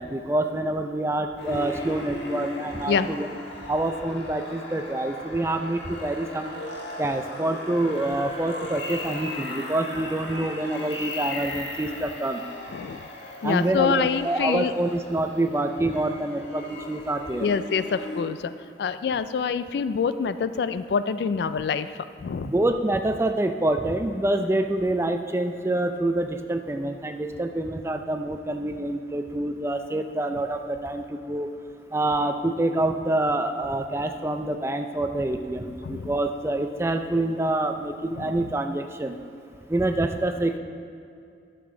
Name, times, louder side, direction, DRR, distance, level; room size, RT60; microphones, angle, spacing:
voice 1, 0.0-3.3 3.7-6.5 7.0-12.4 13.4-17.5 22.4-31.5 31.9-39.2 39.7-40.6, right 1 dB, 15° right, 6 dB, 0.4 m, -26 dB
sound 1, 1.4-18.2, left 1 dB, 85° left, 1.4 m, -37 dB
voice 2, 12.7-13.1 13.4-14.7 17.4-18.5 18.8-21.9 22.2-22.5 35.8-36.1 38.2-38.3, left 6 dB, 65° left, 13 dB, 0.3 m, -26 dB
11.5 x 6.9 x 3.7 m, 2.5 s
head